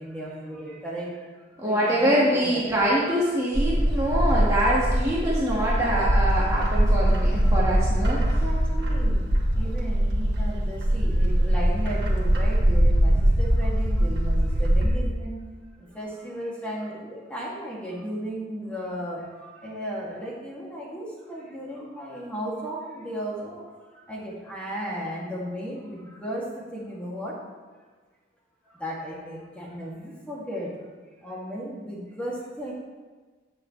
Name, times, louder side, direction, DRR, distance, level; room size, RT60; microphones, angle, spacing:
voice 1, 0.0-2.6 7.4-7.7 8.1-15.4 15.8-27.3 28.6-30.7 31.2-32.7, equal, 5° left, -5 dB, 2.6 m, -35 dB
voice 2, 1.6-8.2, right 1 dB, 15° right, -8 dB, 1.9 m, -24 dB
Bird, 3.5-14.9, right 1 dB, 60° right, 1.9 m, -22 dB
18.5 x 7.0 x 3.4 m, 1.4 s
head